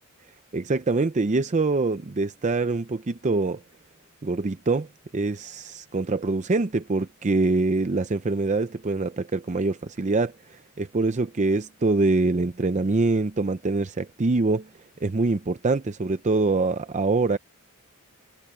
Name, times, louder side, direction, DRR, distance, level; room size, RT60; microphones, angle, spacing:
voice 1, 0.5-3.6 4.2-4.9 5.1-14.7 15.0-17.4, right 3 dB, 35° right, 0.5 m, -24 dB
head